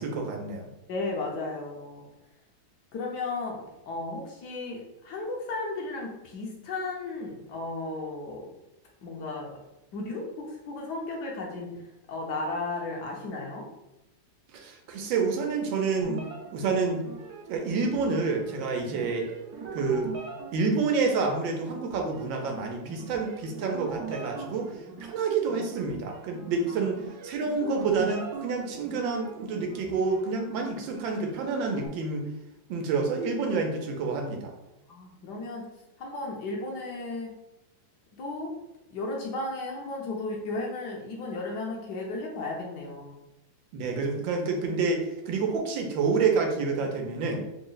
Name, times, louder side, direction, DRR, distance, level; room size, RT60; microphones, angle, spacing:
voice 1, 0.0-0.7 14.5-16.3 16.5-17.1 17.5-19.3 19.7-20.1 20.5-24.7 25.0-32.3 32.7-34.5 43.7-47.4, right 4 dB, 85° right, 2 dB, 1.4 m, -28 dB
voice 2, 0.9-2.0 2.9-8.5 9.0-9.6 9.9-11.8 12.1-13.7 24.6-24.7 34.9-35.7 36.0-37.3 38.1-38.5 38.9-43.2, left 2 dB, 70° left, -1 dB, 1.2 m, -34 dB
sound 1, 16.0-31.9, right 4 dB, 65° right, 1.1 m, -42 dB
3.8 x 2.1 x 3.8 m, 0.94 s
omnidirectional pair, 2.1 m